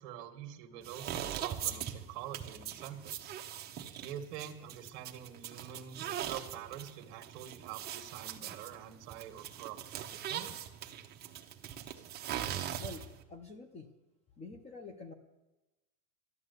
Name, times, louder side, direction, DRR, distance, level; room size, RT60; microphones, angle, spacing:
voice 1, 0.0-3.4 4.0-10.7, right 10 dB, 50° right, 7 dB, 1.6 m, -46 dB
Footsteps Solid Wood Female Barefoot Spinning, 0.8-13.2, right 10 dB, 20° right, 0.8 m, -41 dB
voice 2, 12.8-13.9 14.4-15.1, left 3 dB, 15° left, 8 dB, 0.6 m, -47 dB
13.0 x 11.0 x 8.1 m, 1.1 s
supercardioid pair, 155°, 47 cm